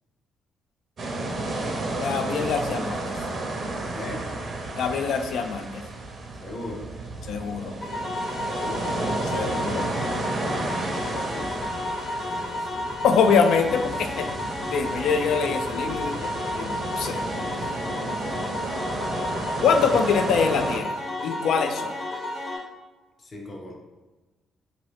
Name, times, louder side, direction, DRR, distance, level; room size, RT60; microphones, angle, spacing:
sound 1, 1.0-20.8, right 2 dB, 50° right, 0.6 m, -32 dB
voice 1, 2.0-3.0 4.8-5.8 7.3-7.7 9.3-9.8 13.0-14.3 14.7-16.2 16.6-17.2 19.6-20.9 21.2-21.9, left 6 dB, 75° left, 7 dB, 0.3 m, -24 dB
voice 2, 3.9-4.3 6.4-6.9 8.5-9.1 10.8-11.5 12.2-12.9 23.2-23.7, left 1 dB, 35° left, -1 dB, 0.6 m, -38 dB
sound 2, 7.8-22.6, left 1 dB, 60° left, 1.1 m, -32 dB
2.7 x 2.6 x 3.4 m, 1.2 s
cardioid pair, 90°, 0 cm